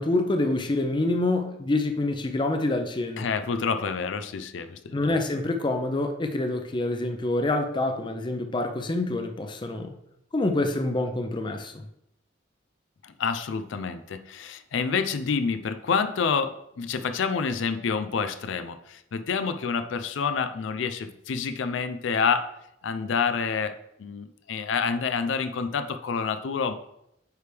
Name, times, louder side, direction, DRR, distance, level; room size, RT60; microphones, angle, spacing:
voice 1, 0.0-3.3 4.9-9.9 10.3-11.9, left 2 dB, 25° left, 6 dB, 0.5 m, -26 dB
voice 2, 3.2-5.0 13.0-22.5 22.8-23.7 24.0-26.7, left 5 dB, 85° left, 10 dB, 0.4 m, -28 dB
9.1 x 3.3 x 3.4 m, 0.79 s
head